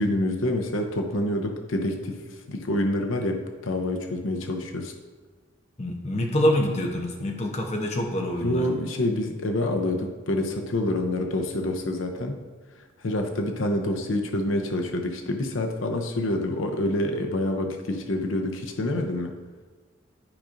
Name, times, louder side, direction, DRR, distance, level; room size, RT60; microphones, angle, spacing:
voice 1, 0.0-2.2 2.5-4.9 8.2-12.4 13.0-19.3, left 1 dB, 80° left, 3 dB, 0.7 m, -27 dB
voice 2, 5.8-8.6, left 1 dB, 35° left, 1 dB, 0.8 m, -26 dB
11.5 x 5.0 x 2.6 m, 1.4 s
head